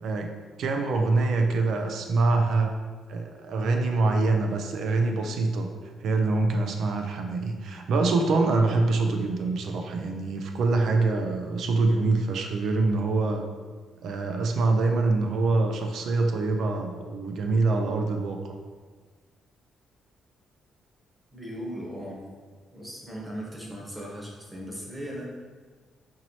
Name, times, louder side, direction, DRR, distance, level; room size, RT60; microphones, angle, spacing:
voice 1, 0.0-0.3 0.6-2.7 3.1-5.7 6.0-13.4 14.0-18.6, right 3 dB, 70° right, 4 dB, 0.4 m, -25 dB
voice 2, 21.3-22.2 22.7-25.2, equal, 15° right, -3 dB, 1.0 m, -38 dB
4.5 x 2.9 x 2.7 m, 1.5 s
cardioid pair, 90°, 0 cm